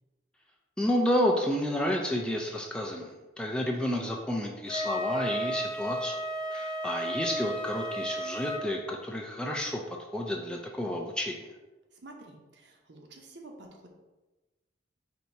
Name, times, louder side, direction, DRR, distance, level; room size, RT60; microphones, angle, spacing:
voice 1, 0.8-6.2 6.5-9.8 10.1-11.5, left 1 dB, 5° left, 0 dB, 0.3 m, -30 dB
Wind instrument woodwind instrument, 4.7-8.6, equal, 25° left, 0.9 m, -33 dB
voice 2, 11.9-13.9, right 2 dB, 60° right, 2 dB, 0.7 m, -49 dB
4.5 x 2.7 x 4.0 m, 1.1 s
head